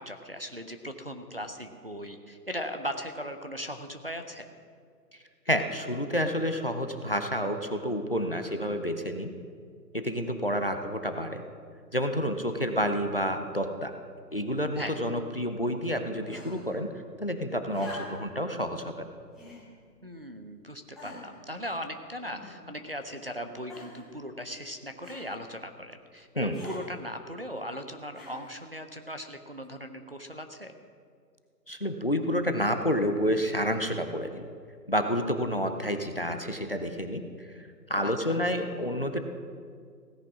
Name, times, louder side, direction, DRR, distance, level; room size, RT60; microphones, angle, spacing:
voice 1, 0.0-4.5 14.8-15.0 20.0-30.7 38.0-38.4, equal, 35° right, 5 dB, 0.6 m, -38 dB
voice 2, 5.5-9.3 9.9-11.4 11.9-13.9 14.3-16.9 17.2-19.1 26.4-26.6 31.7-34.5 34.9-39.2, equal, 35° left, 7 dB, 0.6 m, -29 dB
sound 1, 16.3-16.8 17.7-18.4 19.3-19.7 20.4-20.5 20.9-21.4 22.2-22.8 23.7-24.1 25.0-25.3 26.5-26.8 28.1-28.6 29.6-29.7, left 2 dB, ahead, 0.7 m, -45 dB
16.5 x 9.8 x 6.1 m, 2.2 s
hypercardioid pair, 175°, 49 cm